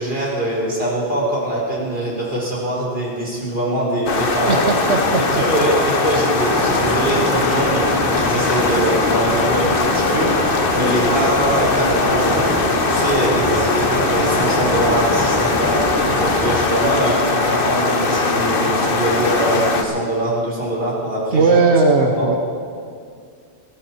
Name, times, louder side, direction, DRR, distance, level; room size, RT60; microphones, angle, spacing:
voice 1, 0.0-4.6 5.3-12.5 12.9-21.6 22.2-22.4, right 1 dB, 60° right, -5 dB, 5.0 m, -23 dB
sound 1, 4.1-19.8, left 3 dB, 55° left, 1.3 m, -20 dB
voice 2, 4.5-5.2 21.3-22.4, right 3 dB, 85° right, 3 dB, 1.3 m, -16 dB
sound 2, 6.5-16.7, right 1 dB, 15° right, 1.5 m, -26 dB
21.0 x 15.0 x 4.6 m, 2.2 s
omnidirectional pair, 1.1 m